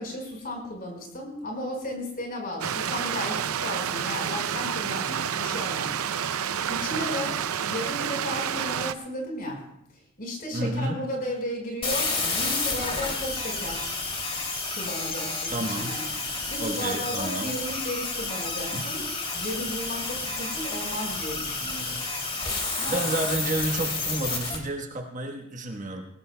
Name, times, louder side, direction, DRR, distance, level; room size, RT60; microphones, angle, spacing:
voice 1, 0.0-6.4 6.7-9.7 9.9-14.0 14.7-16.0 16.3-19.1 19.3-22.0 22.8-23.0, left 1 dB, 40° left, 0 dB, 4.8 m, -34 dB
Stream, 2.6-8.9, right 8 dB, 85° right, 0.5 m, -29 dB
voice 2, 10.5-11.0 15.5-16.0 16.6-17.5 18.7-18.8 22.9-26.1, right 1 dB, 35° right, 3 dB, 1.3 m, -30 dB
sound 1, 11.8-24.6, left 3 dB, 25° left, 2.6 m, -30 dB
21.0 x 17.5 x 2.2 m, 0.76 s
head